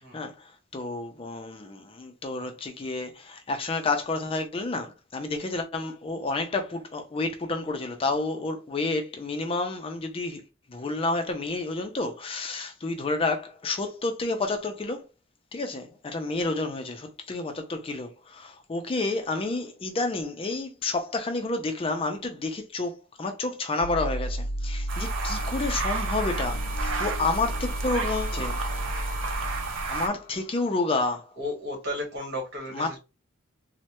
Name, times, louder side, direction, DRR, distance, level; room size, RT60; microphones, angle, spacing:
voice 1, 0.1-10.4 10.7-15.1 15.5-28.6 29.9-31.3 32.7-33.0, left 3 dB, 30° left, 0.4 m, -30 dB
sound 1, 23.8-30.8, equal, 85° left, 0.5 m, -33 dB
sound 2, 24.9-30.1, right 4 dB, 70° right, 0.6 m, -32 dB
voice 2, 31.4-33.0, left 1 dB, 55° right, 1.3 m, -34 dB
3.1 x 2.1 x 2.9 m
head